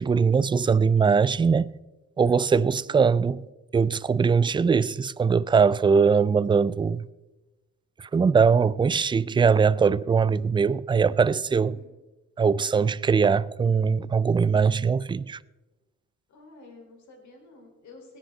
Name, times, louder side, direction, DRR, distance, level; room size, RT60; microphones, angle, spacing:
voice 1, 0.0-1.7 2.2-3.4 3.7-7.1 8.0-11.8 12.4-15.4, right 5 dB, 15° right, 0.3 m, -21 dB
voice 2, 2.6-3.5 11.6-11.9 16.3-18.2, left 2 dB, 70° left, 4.4 m, -51 dB
18.0 x 10.0 x 3.9 m
cardioid pair, 90°, 30 cm